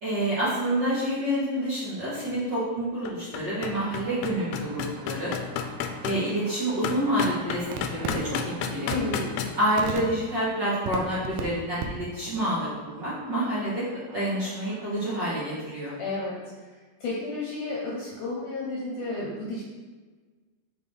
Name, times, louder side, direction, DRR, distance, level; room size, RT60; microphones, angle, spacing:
voice 1, 0.0-5.3 6.0-8.9 9.6-13.8 14.1-16.0, right 1 dB, 50° right, -10 dB, 1.4 m, -28 dB
sound 1, 2.3-2.4 2.8-6.2 6.8-9.5, left 8 dB, 85° left, 2.5 m, -32 dB
sound 2, 3.6-11.4 11.8-11.9 12.1-12.4 12.8-15.7, right 4 dB, 80° right, 2.3 m, -40 dB
voice 2, 8.9-9.3 16.0-19.6, left 2 dB, 70° left, -4 dB, 2.2 m, -32 dB
6.8 x 6.3 x 3.5 m, 1.4 s
omnidirectional pair, 4.4 m